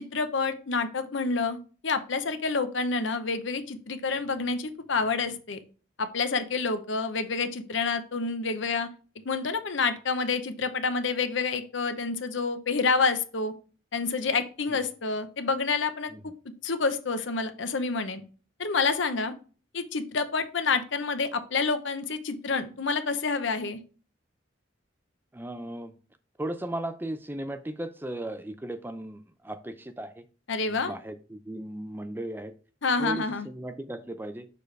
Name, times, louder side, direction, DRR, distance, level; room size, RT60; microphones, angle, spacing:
voice 1, 0.0-1.6 1.8-5.6 6.0-8.9 9.3-13.5 13.9-16.1 16.6-18.2 18.6-19.3 19.7-23.8 30.5-30.9 32.8-33.5, left 4 dB, 65° left, 9 dB, 0.8 m, -28 dB
voice 2, 25.3-25.9 26.4-30.2 30.7-32.5 33.0-34.5, right 1 dB, 10° right, 10 dB, 0.4 m, -36 dB
6.8 x 4.9 x 3.3 m, 0.37 s
head